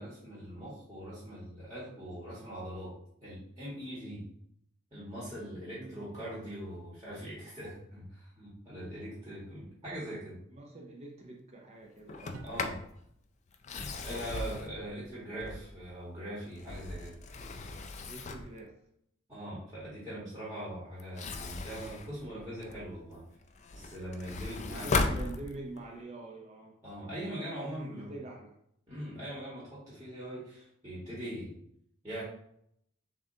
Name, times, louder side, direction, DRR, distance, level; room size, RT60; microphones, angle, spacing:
voice 1, 0.0-2.9 3.2-4.2 4.9-10.4 12.4-12.8 13.7-17.1 19.3-23.2 23.7-25.2 26.8-28.1 28.9-31.6 32.0-32.2, equal, 15° right, -8 dB, 1.4 m, -41 dB
voice 2, 5.8-6.4 10.5-12.5 18.1-18.8 24.4-26.8 27.6-28.6, right 2 dB, 30° right, 0 dB, 0.6 m, -45 dB
sound 1, 9.9-10.2 12.3-12.9 14.5-14.9 16.9-17.5, right 3 dB, 85° right, 0.5 m, -52 dB
Sliding door, 12.1-12.9 13.5-15.9 16.4-18.6 21.0-22.9 23.4-25.9, left 3 dB, 35° left, 0.3 m, -37 dB
6.9 x 2.5 x 2.7 m, 0.71 s
head